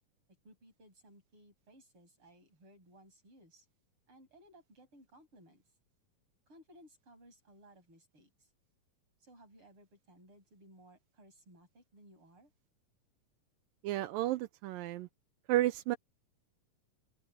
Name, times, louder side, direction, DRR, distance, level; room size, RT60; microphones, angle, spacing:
voice 1, 0.4-3.7 4.1-5.6 6.5-8.5 9.2-12.5, right 1 dB, 35° right, 8.6 m, -60 dB
voice 2, 13.8-15.1 15.5-16.0, right 15 dB, 85° right, 2.5 m, -32 dB
open air
omnidirectional pair, 3.9 m